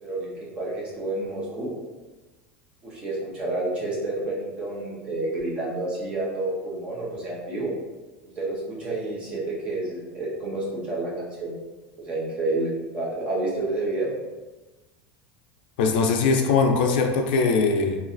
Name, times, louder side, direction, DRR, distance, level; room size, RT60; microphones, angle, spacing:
voice 1, 0.0-1.7 2.8-7.7 8.4-11.5 12.0-14.1, right 2 dB, 20° right, -5 dB, 0.7 m, -29 dB
voice 2, 15.8-18.0, left 4 dB, 80° left, 3 dB, 0.4 m, -21 dB
3.0 x 2.4 x 2.5 m, 1.2 s
supercardioid pair, 175°, 5 cm